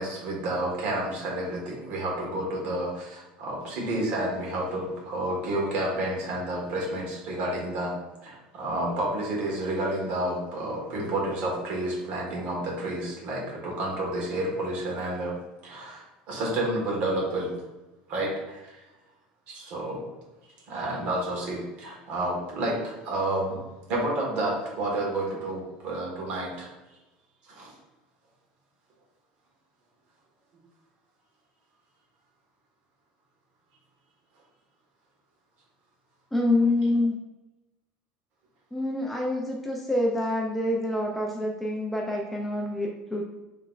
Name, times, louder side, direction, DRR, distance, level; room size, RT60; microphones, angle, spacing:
voice 1, 0.0-7.9 8.2-15.3 15.6-17.5 18.1-18.8 19.5-20.0 20.4-23.6 23.9-26.7 27.4-27.7, right 1 dB, 50° right, -2 dB, 1.5 m, -30 dB
voice 2, 36.3-37.2 38.7-43.2, left 1 dB, 5° left, -1 dB, 0.4 m, -26 dB
5.9 x 3.2 x 2.4 m, 1.1 s
cardioid pair, 165°, 3 cm